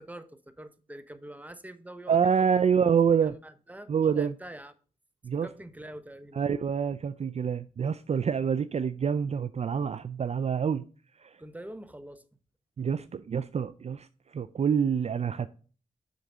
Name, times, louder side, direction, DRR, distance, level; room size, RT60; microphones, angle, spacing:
voice 1, 0.0-2.5 3.1-4.7 5.3-6.5 11.4-12.2, right 1 dB, 10° right, 0.9 m, -45 dB
voice 2, 2.1-3.3 3.9-4.3 5.2-5.5 6.3-10.8 11.2-11.4 12.8-14.1 14.3-15.5, right 7 dB, 45° right, 0.4 m, -26 dB
6.6 x 4.0 x 6.1 m
cardioid pair, 50°, 15 cm